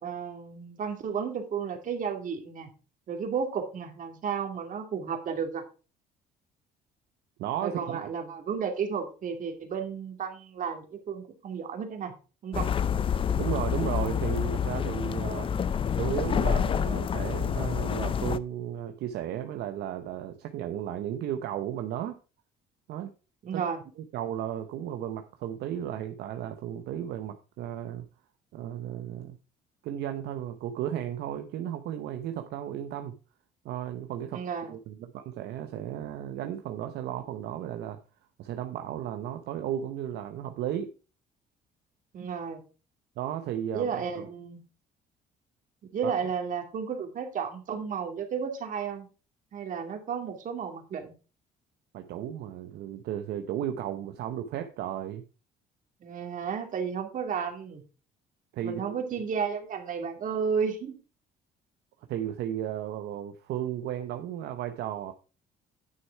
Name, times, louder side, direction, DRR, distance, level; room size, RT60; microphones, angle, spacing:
voice 1, 0.0-2.7 3.1-5.6 7.6-12.1 12.4-12.7 23.4-23.8 34.3-34.7 42.1-42.6 43.7-44.6 45.9-49.1 49.5-51.1 56.0-57.8 58.6-61.0, right 6 dB, 50° right, 5 dB, 2.3 m, -33 dB
voice 2, 7.4-8.0 13.4-15.5 16.0-22.2 22.9-23.1 23.5-23.6 24.1-28.1 28.5-29.4 29.8-33.1 33.6-34.4 34.7-38.0 38.4-40.9 43.2-43.9 44.1-44.3 46.0-46.2 51.9-55.2 58.5-59.0 62.1-65.1, right 10 dB, 75° right, 7 dB, 0.8 m, -34 dB
sound 1, 12.5-18.4, left 7 dB, 30° left, 0.5 m, -28 dB
9.4 x 6.5 x 4.5 m, 0.34 s
cardioid pair, 110°, 17 cm